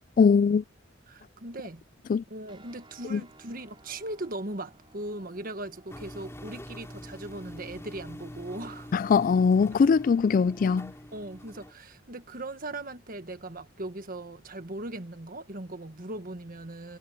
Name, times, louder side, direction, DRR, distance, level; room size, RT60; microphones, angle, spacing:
voice 1, 0.2-0.6 2.1-2.2 3.1-3.2 8.9-10.9, left 5 dB, 45° left, 0.3 m, -21 dB
voice 2, 1.1-1.8 2.3-8.9 11.1-17.0, right 2 dB, 50° right, 1.6 m, -39 dB
sound 1, 2.5-13.7, right 2 dB, 30° right, 6.6 m, -61 dB
sound 2, 5.9-11.7, equal, 15° left, 4.3 m, -45 dB
head